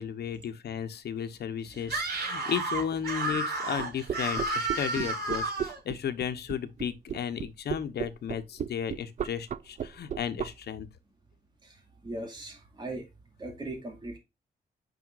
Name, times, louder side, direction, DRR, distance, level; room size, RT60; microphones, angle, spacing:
voice 1, 0.0-10.9, left 8 dB, 90° left, 1.1 m, -34 dB
Screaming, 1.8-5.8, right 2 dB, 80° right, 5.1 m, -31 dB
sound 1, 3.8-10.5, right 8 dB, 50° right, 0.4 m, -33 dB
voice 2, 11.6-13.1 13.4-14.2, right 2 dB, 25° right, 2.6 m, -40 dB
9.1 x 5.8 x 2.5 m
wide cardioid pair, 145°, 16 cm